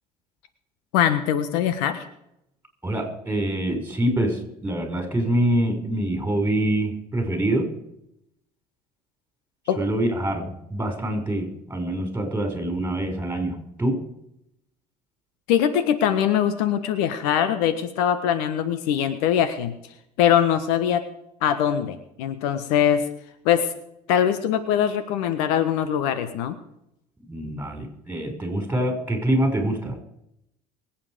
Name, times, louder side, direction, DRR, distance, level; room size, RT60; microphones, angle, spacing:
voice 1, 0.9-2.1 9.7-9.8 15.5-19.7 20.2-21.0 21.4-23.1 23.4-23.7 24.1-26.6, left 9 dB, 70° left, 12 dB, 1.4 m, -22 dB
voice 2, 2.8-7.7 9.8-14.0 27.3-30.0, right 1 dB, 10° right, 4 dB, 5.9 m, -25 dB
23.5 x 8.9 x 5.1 m, 0.79 s
hypercardioid pair, 65°, 20 cm